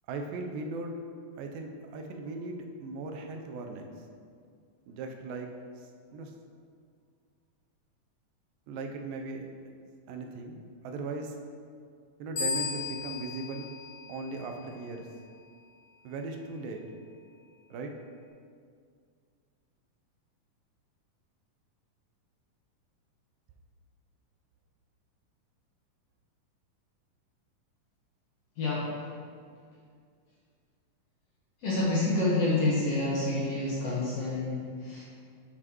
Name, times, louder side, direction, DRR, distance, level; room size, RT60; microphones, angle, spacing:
voice 1, 0.1-1.0 1.4-3.9 4.9-5.5 5.8-6.3 8.7-9.4 10.1-10.6 10.8-11.4 12.2-13.7 14.1-15.1 16.0-16.8 17.7-17.9, right 3 dB, 85° right, 3 dB, 2.4 m, -38 dB
sound 1, 12.4-14.8, left 5 dB, 85° left, 0.9 m, -36 dB
voice 2, 28.6-29.1 31.6-35.1, left 2 dB, 60° left, -6 dB, 1.8 m, -28 dB
9.7 x 6.2 x 3.0 m, 2.2 s
omnidirectional pair, 4.0 m